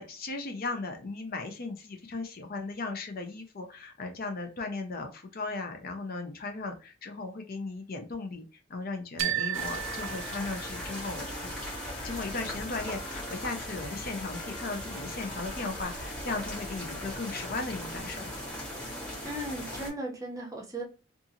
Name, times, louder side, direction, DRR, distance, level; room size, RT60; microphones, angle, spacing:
voice 1, 0.0-8.4 8.7-11.5 12.0-18.3, left 3 dB, 50° left, 5 dB, 0.5 m, -37 dB
sound 1, 9.2-11.1, right 12 dB, 75° right, 0.4 m, -34 dB
Trumpet, 9.4-18.4, left 2 dB, 80° left, 0.9 m, -50 dB
sound 2, 9.5-19.9, left 1 dB, 5° left, 1.0 m, -39 dB
voice 2, 19.2-20.8, right 1 dB, 15° right, 0 dB, 0.6 m, -36 dB
2.6 x 2.4 x 2.7 m, 0.34 s
head